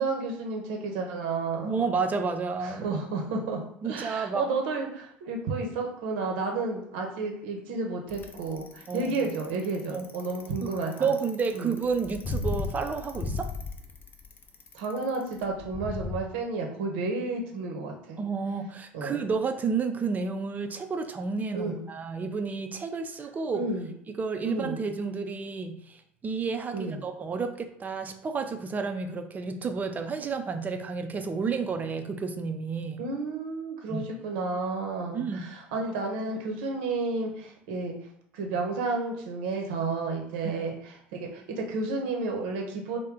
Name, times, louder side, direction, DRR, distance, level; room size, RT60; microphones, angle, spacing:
voice 1, 0.0-1.8 2.6-11.1 11.5-11.7 14.7-18.2 18.9-19.2 21.5-21.8 23.5-23.9 24.4-24.8 26.7-27.0 33.0-37.9 38.3-43.0, right 3 dB, 65° right, 1 dB, 0.7 m, -31 dB
voice 2, 1.6-3.0 3.8-4.4 8.9-9.3 9.9-10.0 10.6-10.7 11.0-13.5 18.2-23.7 24.1-33.0 33.9-34.1 35.1-35.5 40.4-40.6, right 5 dB, 25° right, 6 dB, 0.5 m, -31 dB
Bicycle, 8.1-16.2, left 3 dB, 35° left, 0.6 m, -35 dB
3.2 x 2.2 x 3.6 m, 0.69 s
hypercardioid pair, 75°, 6 cm